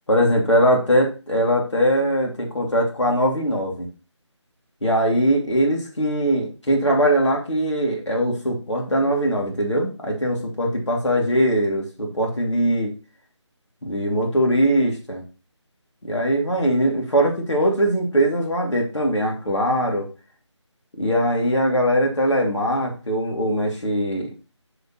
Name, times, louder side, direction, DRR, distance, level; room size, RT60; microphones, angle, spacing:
voice 1, 0.1-3.9 4.8-12.9 13.8-15.2 16.0-20.1 21.0-24.3, equal, 70° left, 0 dB, 2.6 m, -21 dB
8.6 x 5.0 x 3.1 m, 0.33 s
figure-of-eight pair, 160°, 16 cm